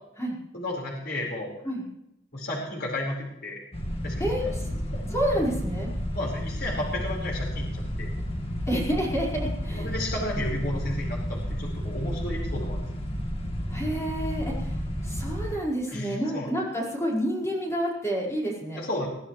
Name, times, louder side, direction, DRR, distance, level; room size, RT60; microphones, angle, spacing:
voice 1, 0.5-1.5 2.3-3.6 4.0-4.5 4.9-5.1 6.1-8.1 9.8-13.1 15.9-16.5 18.8-19.1, left 1 dB, 55° left, -2 dB, 4.9 m, -33 dB
sound 1, 3.7-15.6, equal, 30° left, 1.9 m, -31 dB
voice 2, 4.2-4.7 5.1-5.9 8.7-9.9 13.7-18.8, equal, 15° left, -3 dB, 5.1 m, -29 dB
22.5 x 14.0 x 3.3 m, 0.83 s
head